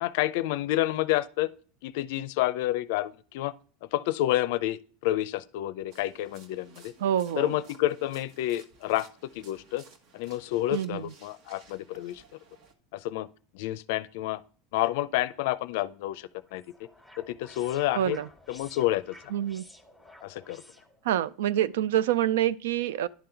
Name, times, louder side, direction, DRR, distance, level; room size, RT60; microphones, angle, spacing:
voice 1, 0.0-1.5 1.8-3.5 3.9-6.9 7.4-9.1 9.3-9.8 10.1-12.2 12.9-13.3 13.5-14.4 14.7-16.6 17.2-18.2 18.5-19.3 20.2-20.6, left 15 dB, 75° left, 0.4 m, -29 dB
sound 1, 5.9-12.7, right 4 dB, 60° right, 1.1 m, -56 dB
voice 2, 7.0-7.5 10.7-11.1 18.0-18.3 19.3-19.6 21.0-23.1, right 11 dB, 90° right, 0.3 m, -26 dB
sound 2, 16.1-21.3, left 1 dB, 5° right, 1.3 m, -53 dB
10.5 x 3.9 x 4.4 m
supercardioid pair, 125°, 0 cm